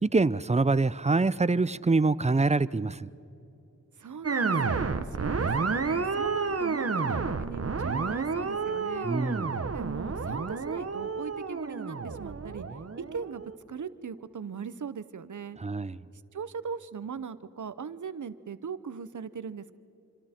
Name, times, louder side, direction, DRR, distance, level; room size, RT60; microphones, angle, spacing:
voice 1, 0.0-3.1 9.0-9.5 15.6-16.0, right 3 dB, 20° right, 0.5 m, -25 dB
voice 2, 4.0-9.1 9.7-12.7 13.0-15.6 16.3-19.8, right 6 dB, 75° right, 0.9 m, -39 dB
sound 1, 4.2-13.5, right 4 dB, 50° right, 1.2 m, -30 dB
27.0 x 26.5 x 4.4 m
wide cardioid pair, 70°, 30 cm